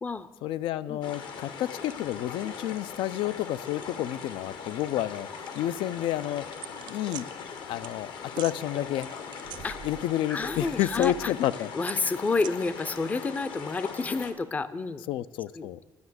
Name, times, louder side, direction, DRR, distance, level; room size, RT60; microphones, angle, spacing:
voice 1, 0.4-5.3 5.6-6.4 6.9-7.3 7.7-9.1 9.8-11.7 15.1-15.8, left 13 dB, 80° left, 16 dB, 0.3 m, -30 dB
sound 1, 1.0-14.3, left 6 dB, 65° left, 1.0 m, -40 dB
sound 2, 6.6-7.2 7.8-8.0 8.3-8.6 9.0-10.1 10.4-11.4 11.9-12.5, right 12 dB, 60° right, 0.4 m, -42 dB
voice 2, 10.3-11.3 11.7-15.0 15.5-15.7, left 3 dB, 20° left, 14 dB, 0.4 m, -30 dB
9.5 x 6.1 x 7.8 m, 1.2 s
cardioid pair, 150°, 8 cm